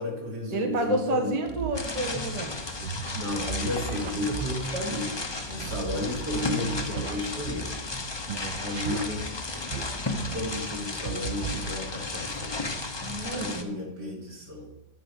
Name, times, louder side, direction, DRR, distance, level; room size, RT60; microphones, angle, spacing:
voice 1, 0.0-1.3 3.1-5.1 5.5-7.7 8.6-9.3 10.3-12.7 13.3-14.7, left 1 dB, 80° right, -3 dB, 3.4 m, -33 dB
voice 2, 0.5-2.5 13.0-13.8, right 2 dB, 25° right, 2 dB, 1.3 m, -29 dB
sound 1, 1.4-8.0 8.3-10.8 11.0-12.1, right 6 dB, 60° right, 0.5 m, -38 dB
sound 2, 1.7-13.6, left 3 dB, 30° left, 0.4 m, -34 dB
9.9 x 4.9 x 6.9 m, 0.96 s
omnidirectional pair, 1.8 m